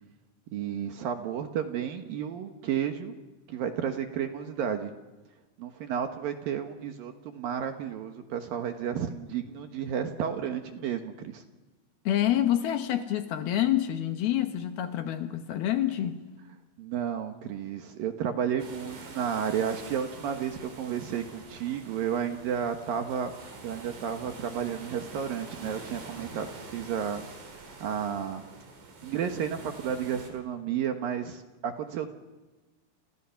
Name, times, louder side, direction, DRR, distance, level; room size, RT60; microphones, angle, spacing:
voice 1, 0.5-3.1 3.5-4.9 5.6-11.4 16.8-23.3 23.6-27.2 27.8-28.4 29.0-32.1, right 8 dB, 65° right, 2.7 m, -32 dB
voice 2, 12.1-16.2, left 11 dB, 70° left, 2.8 m, -27 dB
sound 1, 18.6-30.3, right 3 dB, 85° right, 6.9 m, -46 dB
30.0 x 29.0 x 5.9 m
omnidirectional pair, 5.1 m